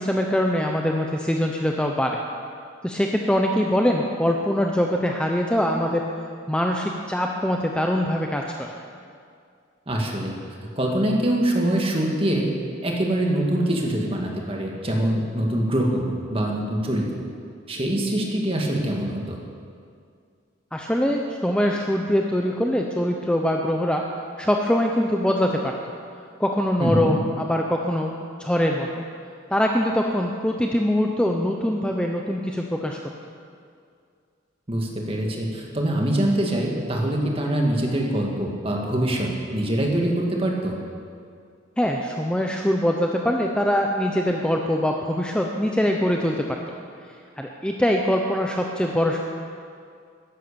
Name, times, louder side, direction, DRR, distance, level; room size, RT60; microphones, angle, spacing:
voice 1, 0.0-2.2 2.8-6.0 6.5-8.7 20.7-24.0 24.4-25.9 26.4-28.1 28.4-29.0 29.5-33.0 41.8-46.5 47.4-49.2, equal, 5° left, 1 dB, 0.6 m, -23 dB
voice 2, 9.9-10.4 10.8-12.5 12.8-17.0 17.7-19.4 26.8-27.1 34.7-40.8, right 1 dB, 30° right, 0 dB, 1.9 m, -24 dB
13.5 x 11.0 x 6.9 m, 2.2 s
head